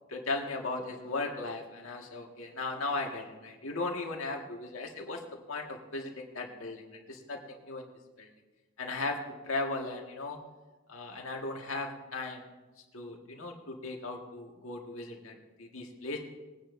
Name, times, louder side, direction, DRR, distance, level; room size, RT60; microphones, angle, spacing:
voice 1, 0.1-5.2 5.5-6.8 7.1-7.9 8.2-8.3 8.8-9.2 9.4-10.4 10.9-12.4 12.9-16.2, left 3 dB, 80° left, 1 dB, 1.8 m, -37 dB
22.0 x 9.7 x 2.6 m, 1.2 s
head